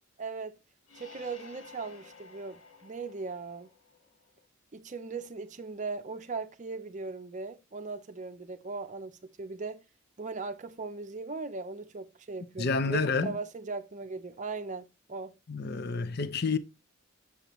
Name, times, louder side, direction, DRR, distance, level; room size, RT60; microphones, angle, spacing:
voice 1, 0.2-0.6 1.0-3.7 4.7-9.8 10.2-15.3, right 4 dB, 35° right, 0.5 m, -39 dB
sound 1, 0.8-4.4, left 4 dB, 85° left, 1.6 m, -53 dB
voice 2, 12.6-13.4 15.5-16.6, left 4 dB, 50° left, 0.6 m, -29 dB
8.2 x 7.0 x 3.0 m
head